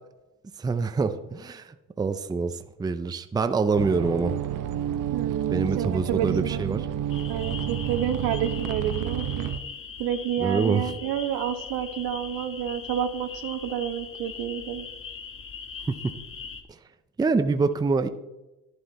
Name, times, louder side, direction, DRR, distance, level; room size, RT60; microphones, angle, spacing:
voice 1, 0.6-4.3 5.5-6.8 10.4-10.8 17.2-18.1, right 4 dB, 10° right, 9 dB, 0.5 m, -25 dB
sound 1, 3.8-9.6, right 10 dB, 55° right, 0.9 m, -30 dB
voice 2, 5.1-6.8 7.3-9.5 10.0-14.9, right 9 dB, 85° right, 8 dB, 1.4 m, -29 dB
sound 2, 7.1-16.6, left 6 dB, 35° left, 1.2 m, -40 dB
11.0 x 11.0 x 4.1 m, 1.0 s
cardioid pair, 145°, 39 cm